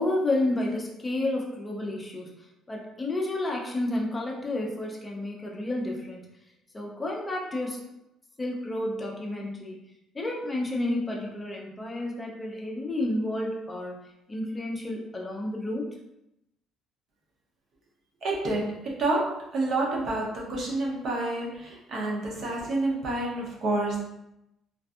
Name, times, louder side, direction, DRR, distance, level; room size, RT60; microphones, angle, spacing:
voice 1, 0.0-2.3 2.7-6.3 6.7-7.8 8.4-9.8 10.1-15.9, left 1 dB, 15° left, -1 dB, 0.4 m, -31 dB
voice 2, 18.2-24.0, right 2 dB, 45° right, -2 dB, 0.7 m, -29 dB
2.6 x 2.5 x 2.3 m, 0.85 s
cardioid pair, 160°, 0 cm